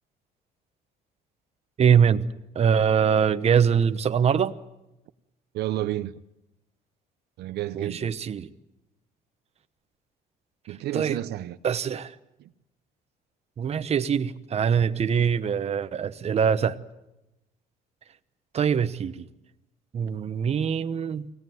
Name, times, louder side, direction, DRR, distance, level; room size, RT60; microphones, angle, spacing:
voice 1, 1.8-2.2 2.5-4.5 7.7-8.5 10.9-11.2 11.6-12.1 13.6-16.8 18.5-19.3 19.9-21.3, right 7 dB, 40° right, 1.0 m, -23 dB
voice 2, 5.5-6.2 7.4-8.1 10.7-11.6 12.4-12.5, right 14 dB, 75° right, 0.8 m, -31 dB
24.0 x 17.5 x 9.4 m
cardioid pair, 110°, 17 cm